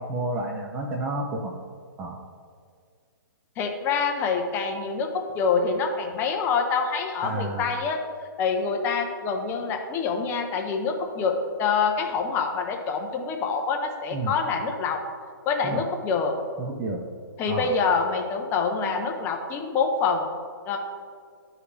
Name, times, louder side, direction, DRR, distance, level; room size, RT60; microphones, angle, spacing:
voice 1, 0.0-1.5 2.0-2.2 7.2-7.7 14.1-14.3 15.6-15.8 16.6-17.1 17.5-17.7, right 2 dB, 15° right, 2 dB, 0.5 m, -30 dB
voice 2, 3.6-8.0 8.4-15.0 15.5-16.3 17.4-20.3 20.7-20.8, left 5 dB, 20° left, 3 dB, 0.7 m, -26 dB
12.5 x 4.9 x 3.3 m, 2.1 s
hypercardioid pair, 155°, 12 cm